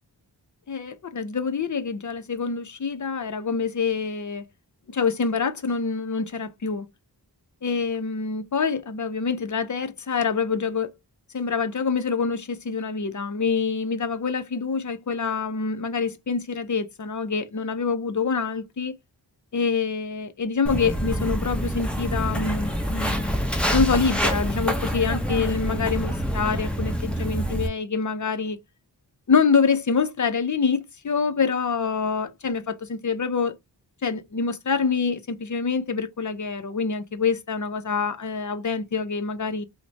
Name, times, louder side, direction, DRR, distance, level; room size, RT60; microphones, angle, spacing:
voice 1, 0.7-4.4 4.9-6.9 7.6-10.9 11.3-18.9 19.5-23.3 23.7-28.6 29.3-33.6 34.0-39.6, left 5 dB, 45° left, 0.6 m, -26 dB
Walk footsteps, 20.7-27.7, equal, 5° left, 0.8 m, -26 dB
2.9 x 2.1 x 4.0 m
wide cardioid pair, 45°, 42 cm